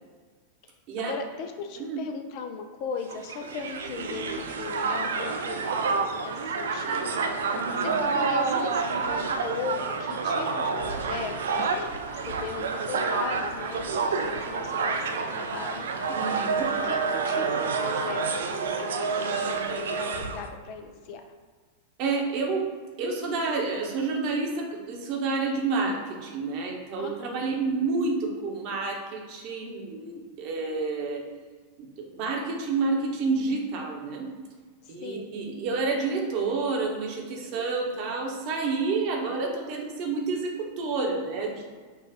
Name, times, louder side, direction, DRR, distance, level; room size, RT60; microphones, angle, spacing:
voice 1, 1.1-15.9 16.5-21.2 27.0-27.4 34.8-35.3, left 5 dB, 45° left, 5 dB, 0.4 m, -38 dB
Crowd, 3.1-20.5, right 4 dB, 60° right, 0.4 m, -28 dB
voice 2, 7.5-7.9 16.1-16.7 22.0-22.6 23.0-31.2 31.8-34.3 34.9-40.5 40.8-41.5, right 3 dB, 45° right, 0 dB, 0.9 m, -29 dB
5.6 x 2.4 x 3.7 m, 1.5 s
figure-of-eight pair, 90°, 0 cm